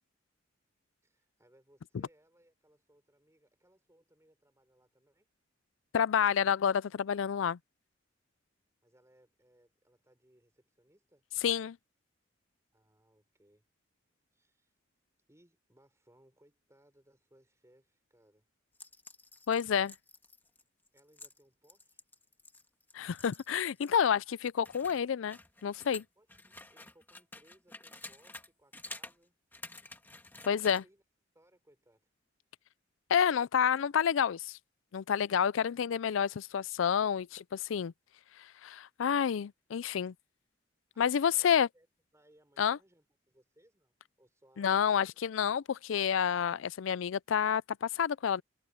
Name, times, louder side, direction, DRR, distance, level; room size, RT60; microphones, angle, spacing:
voice 1, 1.0-5.3 8.8-11.2 12.7-13.7 14.3-14.7 15.3-18.5 20.9-22.0 26.2-29.4 30.4-31.0 31.3-32.1 40.9-41.9 42.1-45.2, right 1 dB, 15° right, 5.6 m, -67 dB
voice 2, 5.9-7.6 11.4-11.8 19.5-19.9 22.9-26.0 30.5-30.8 33.1-34.6 34.9-37.9 38.6-40.1 41.0-41.7 42.6-42.8 44.6-48.4, left 8 dB, 75° left, 0.4 m, -29 dB
sound 1, 18.7-24.1 24.4-28.5 28.7-29.2 29.5-30.8, left 2 dB, 10° left, 1.6 m, -50 dB
head